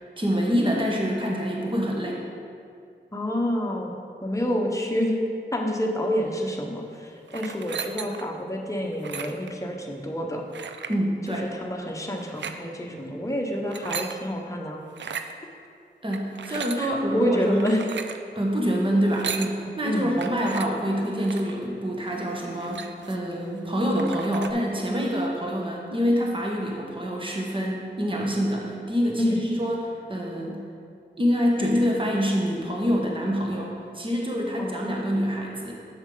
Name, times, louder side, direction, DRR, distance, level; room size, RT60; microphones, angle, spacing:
voice 1, 0.2-2.2 10.9-11.5 16.0-17.6 18.3-30.6 31.2-35.7, equal, 25° right, -2 dB, 1.3 m, -26 dB
voice 2, 3.1-5.2 5.5-10.4 11.3-15.1 16.5-17.8 19.8-20.2 29.2-29.4 34.6-35.2, equal, 15° left, 0 dB, 1.1 m, -28 dB
sound 1, 7.3-8.4 8.9-9.5 10.5-11.0 12.2-12.6 13.5-14.2 14.9-15.3 16.1-16.8 17.5-18.2 19.0-19.5 20.2-20.7 21.2-21.5 22.1-22.2 22.4-23.3 23.7-23.8 24.0-24.5, right 6 dB, 75° right, 0.4 m, -35 dB
7.1 x 6.5 x 3.9 m, 2.3 s
cardioid pair, 40°, 19 cm